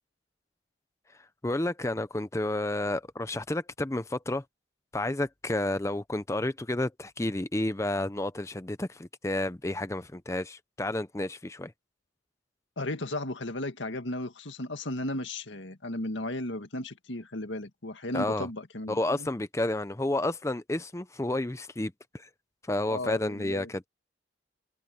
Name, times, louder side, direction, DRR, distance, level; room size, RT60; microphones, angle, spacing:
voice 1, 1.4-4.4 4.9-11.7 18.1-18.5 18.9-22.3 22.6-23.9, left 1 dB, 15° left, 0.6 m, -31 dB
voice 2, 12.8-19.3 22.8-23.7, left 1 dB, 80° left, 2.0 m, -35 dB
head